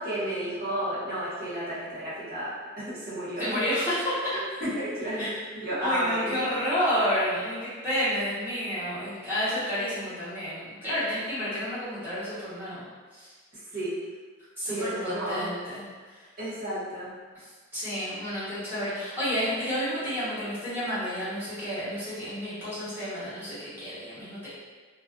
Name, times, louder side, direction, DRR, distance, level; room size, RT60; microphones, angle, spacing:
voice 1, 0.0-3.4 4.3-6.4 13.7-13.9 14.7-15.5 16.4-17.1, equal, 45° right, -10 dB, 0.9 m, -32 dB
voice 2, 3.4-4.1 5.2-5.3 5.8-12.8 13.1-13.3 14.6-15.8 17.3-17.4 17.7-24.5, equal, 10° right, -13 dB, 1.0 m, -30 dB
2.4 x 2.3 x 2.4 m, 1.4 s
head